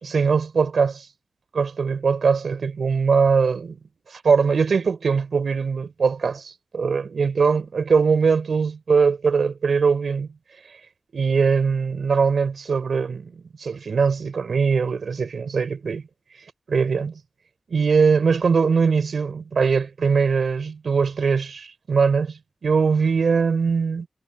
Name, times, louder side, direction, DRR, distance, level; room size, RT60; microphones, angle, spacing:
voice 1, 0.0-1.1 1.5-3.8 4.1-10.3 11.1-16.0 16.7-17.2 17.7-24.1, right 5 dB, 75° right, 4.4 m, -21 dB
wide cardioid pair, 140°, 0 cm